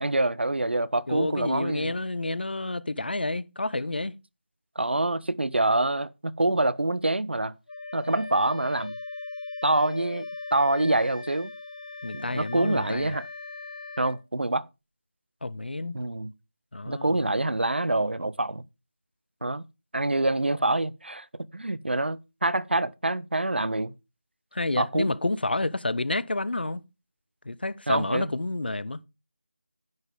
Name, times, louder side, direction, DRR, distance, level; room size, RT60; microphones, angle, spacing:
voice 1, 0.0-2.0 4.8-7.5 7.9-8.9 9.6-11.5 12.1-13.3 14.0-14.7 15.9-16.3 16.9-18.6 19.4-19.6 19.9-21.3 21.5-23.9 24.8-25.1 27.9-28.3, right 2 dB, 70° right, 0.7 m, -26 dB
voice 2, 1.1-4.1 12.0-13.2 15.4-16.0 16.7-17.2 24.5-26.8 27.4-29.0, left 2 dB, 60° left, 0.8 m, -29 dB
Wind instrument woodwind instrument, 7.7-14.2, left 3 dB, 40° left, 1.3 m, -39 dB
10.5 x 9.3 x 3.7 m
figure-of-eight pair, 165°, 6 cm